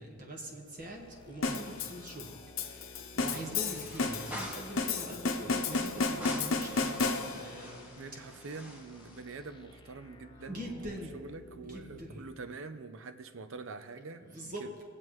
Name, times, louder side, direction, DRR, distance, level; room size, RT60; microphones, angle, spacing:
voice 1, 0.0-2.3 2.6-8.2 10.5-11.1 11.7-12.2 14.2-14.8, equal, 40° right, -1 dB, 1.4 m, -43 dB
sound 1, 0.6-1.4 1.6-1.7 3.2-4.8 5.7-9.2, equal, 5° right, 1.2 m, -47 dB
sound 2, 0.8-12.1, left 2 dB, 20° left, 0.6 m, -55 dB
sound 3, 1.4-7.6, left 4 dB, 65° left, 0.9 m, -33 dB
voice 2, 8.0-14.7, right 4 dB, 65° right, 10 dB, 0.6 m, -45 dB
22.5 x 7.7 x 3.1 m, 2.2 s
head